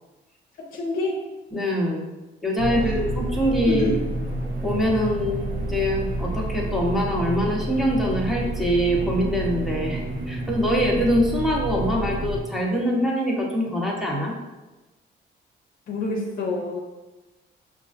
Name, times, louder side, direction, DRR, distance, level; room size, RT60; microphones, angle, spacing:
voice 1, 0.6-1.3 2.7-3.0 3.7-4.0 15.9-16.8, left 3 dB, 50° left, -1 dB, 0.6 m, -28 dB
voice 2, 1.5-2.1 2.4-3.9 4.6-14.3, equal, ahead, -3 dB, 0.9 m, -24 dB
sound 1, 2.6-12.4, right 1 dB, 70° right, 0.9 m, -29 dB
5.2 x 2.4 x 2.4 m, 1.1 s
cardioid pair, 90°, 20 cm